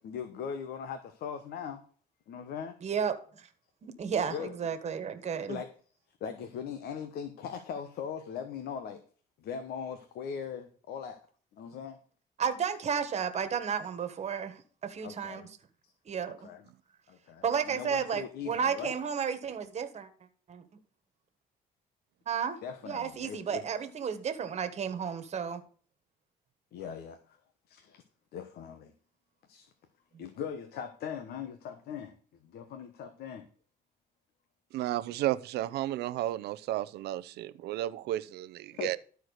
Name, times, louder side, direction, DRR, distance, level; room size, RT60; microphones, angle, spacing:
voice 1, 0.0-1.8 2.3-2.8 4.1-4.6 5.5-5.7 6.2-9.0 9.4-11.2 11.5-12.0 15.0-15.5 15.8-15.9 16.2-16.6 17.1-18.9 22.6-23.7 26.7-27.4 27.7-28.0 28.3-28.9 29.5-29.7 30.2-33.5 38.7-39.0, left 7 dB, 70° left, 1.1 m, -40 dB
voice 2, 2.8-3.5 3.8-5.6 12.4-15.4 16.0-16.5 17.4-20.1 20.5-20.6 22.3-25.6 30.1-30.2, right 7 dB, 40° right, 1.6 m, -33 dB
voice 3, 34.7-39.0, right 14 dB, 75° right, 0.6 m, -33 dB
12.5 x 4.6 x 6.5 m
cardioid pair, 110°, 17 cm